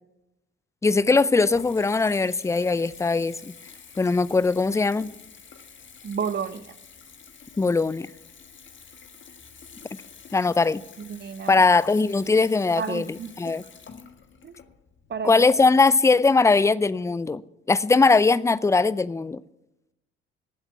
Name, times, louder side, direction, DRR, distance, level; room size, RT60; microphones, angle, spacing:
voice 1, 0.8-3.5 4.0-5.1 7.6-8.1 10.3-10.8 11.5-13.6 15.2-17.4 17.7-19.4, left 3 dB, 10° left, 0.5 m, -20 dB
Water tap faucet / Bathtub (filling or washing) / Trickle dribble, 0.9-15.7, left 6 dB, 35° left, 1.6 m, -49 dB
voice 2, 6.0-6.7 11.0-11.6 12.8-13.3 14.4-14.6 15.1-15.4, right 6 dB, 35° right, 1.0 m, -31 dB
19.0 x 8.1 x 7.1 m
figure-of-eight pair, 45°, 32 cm